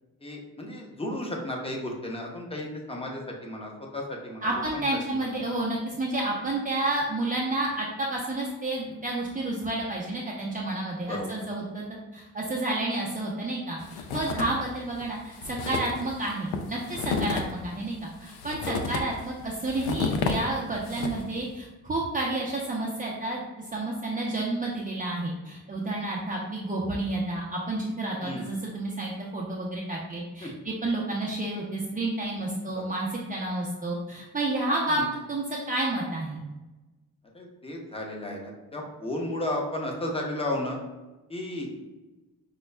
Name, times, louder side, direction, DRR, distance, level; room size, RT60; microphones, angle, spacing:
voice 1, 0.2-4.8 5.1-5.3 11.1-11.3 14.1-14.4 18.7-18.8 28.2-28.5 30.4-30.5 32.8-32.9 34.9-35.1 37.3-40.8 41.3-41.7, left 1 dB, 15° left, 0 dB, 0.8 m, -34 dB
voice 2, 4.4-11.8 12.1-23.4 23.7-36.4, right 2 dB, 25° right, -4 dB, 0.5 m, -30 dB
sound 1, 13.8-14.7 15.0-15.1 15.3-21.4, left 4 dB, 90° left, 0.5 m, -32 dB
5.1 x 2.3 x 2.2 m, 1.1 s
cardioid pair, 90°, 36 cm